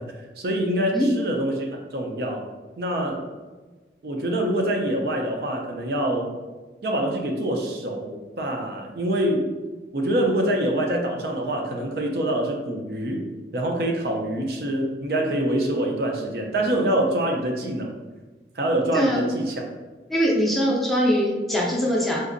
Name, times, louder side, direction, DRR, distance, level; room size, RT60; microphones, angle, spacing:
voice 1, 0.0-2.5 2.8-3.3 4.0-6.3 6.8-9.5 9.9-13.2 13.5-17.9 18.5-19.6, right 1 dB, 60° right, 1 dB, 0.5 m, -25 dB
voice 2, 18.9-19.2 20.1-22.2, equal, ahead, -5 dB, 0.5 m, -22 dB
3.9 x 2.5 x 2.5 m, 1.3 s
head